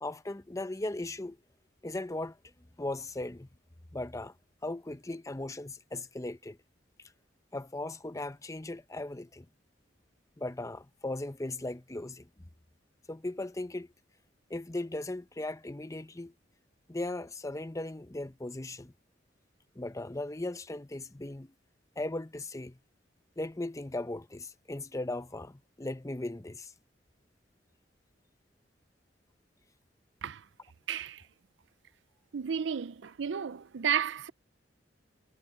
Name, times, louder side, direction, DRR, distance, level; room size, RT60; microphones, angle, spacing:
voice 1, 0.0-1.4 1.8-2.4 2.8-3.5 3.9-4.3 4.6-6.6 7.5-9.5 10.4-12.3 13.1-13.9 14.5-16.3 16.9-18.9 19.7-21.5 22.0-22.8 23.4-26.7, left 2 dB, 20° left, 0.8 m, -37 dB
voice 2, 30.9-31.2 32.3-34.3, right 7 dB, 75° right, 0.5 m, -32 dB
head